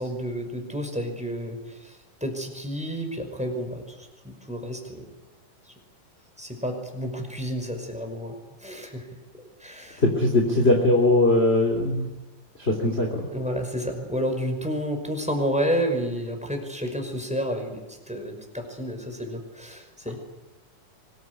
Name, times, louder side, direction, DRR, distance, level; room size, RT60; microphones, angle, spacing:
voice 1, 0.0-4.0 4.5-5.1 6.4-9.1 9.6-10.0 13.3-20.2, equal, ahead, 4 dB, 5.3 m, -30 dB
voice 2, 10.0-12.1 12.6-13.3, left 2 dB, 20° left, 1 dB, 3.4 m, -21 dB
24.5 x 21.5 x 9.8 m, 1.1 s
omnidirectional pair, 3.6 m